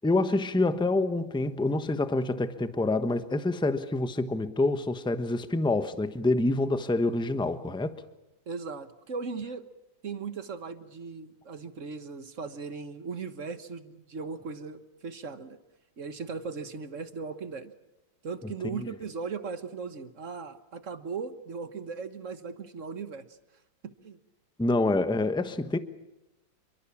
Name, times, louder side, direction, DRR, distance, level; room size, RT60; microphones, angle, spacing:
voice 1, 0.0-8.0 18.7-18.9 24.6-25.8, left 2 dB, 5° left, 0.8 m, -27 dB
voice 2, 8.5-9.7 10.0-15.6 16.0-17.7 18.2-23.2 23.8-24.2, right 5 dB, 45° right, 1.5 m, -38 dB
28.0 x 23.5 x 7.2 m
omnidirectional pair, 2.0 m